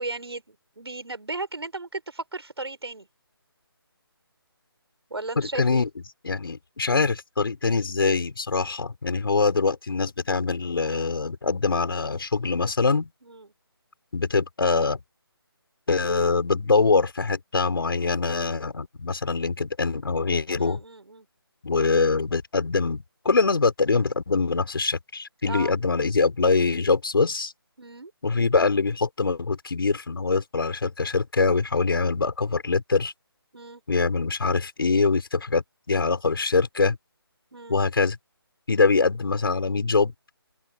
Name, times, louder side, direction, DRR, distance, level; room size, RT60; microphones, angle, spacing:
voice 1, 0.0-3.1 5.1-5.8 13.2-13.5 20.5-21.3 25.4-25.7 27.8-28.1 33.5-33.8 37.5-37.8, right 2 dB, 85° right, 7.1 m, -35 dB
voice 2, 5.4-5.9 6.2-13.1 14.1-15.0 15.9-20.8 21.6-27.5 28.2-33.1 33.9-37.0 37.7-38.2 38.7-40.1, left 4 dB, 65° left, 5.8 m, -23 dB
figure-of-eight pair, 160°, 13 cm